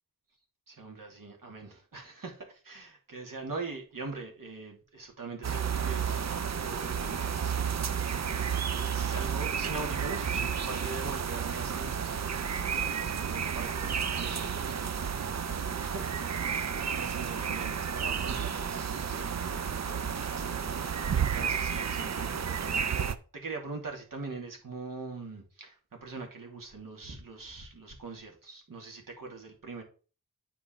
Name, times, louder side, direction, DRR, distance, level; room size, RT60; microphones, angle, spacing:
voice 1, 0.7-16.2 16.5-23.1 23.3-29.8, right 3 dB, 65° right, 2.6 m, -43 dB
sound 1, 5.4-23.1, right 7 dB, 50° right, 0.6 m, -31 dB
10.5 x 4.4 x 4.5 m
wide cardioid pair, 100°, 36 cm